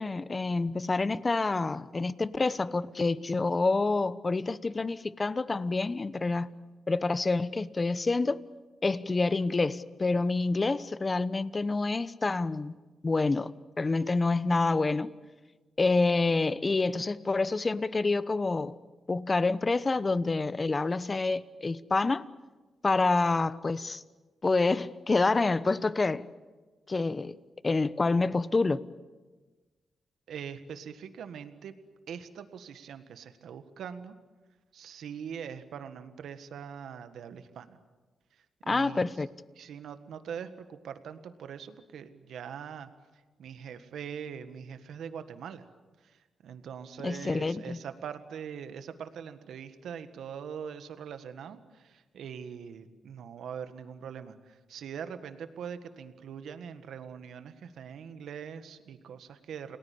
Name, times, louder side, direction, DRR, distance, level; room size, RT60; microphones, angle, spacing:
voice 1, 0.0-6.5 6.9-8.4 8.8-12.8 13.0-13.5 13.8-15.1 15.8-18.8 19.1-22.2 22.8-24.0 24.4-26.3 26.9-27.3 27.6-28.9 38.7-39.3 47.0-47.8, left 3 dB, 35° left, 16 dB, 1.0 m, -27 dB
voice 2, 30.3-31.8 32.1-34.2 34.7-37.8 38.3-39.0 39.6-45.7 46.0-59.8, right 7 dB, 80° right, 10 dB, 1.6 m, -42 dB
29.0 x 19.0 x 8.5 m, 1.3 s
cardioid pair, 65°, 0 cm